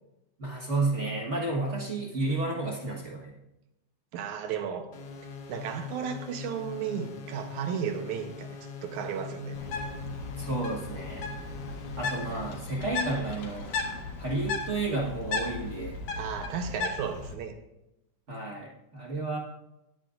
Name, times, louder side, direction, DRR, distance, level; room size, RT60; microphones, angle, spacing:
voice 1, 0.4-3.3 10.4-11.2 12.0-13.7 14.2-16.0 18.3-19.4, right 2 dB, 55° right, -2 dB, 0.8 m, -31 dB
voice 2, 4.1-5.0 5.5-9.6 16.2-17.6, right 7 dB, 75° right, 7 dB, 2.2 m, -34 dB
sound 1, 4.9-12.6, left 6 dB, 60° left, 1.7 m, -42 dB
Bird, 9.5-17.3, left 4 dB, 90° left, 3.1 m, -36 dB
22.0 x 8.8 x 2.5 m, 0.90 s
omnidirectional pair, 3.6 m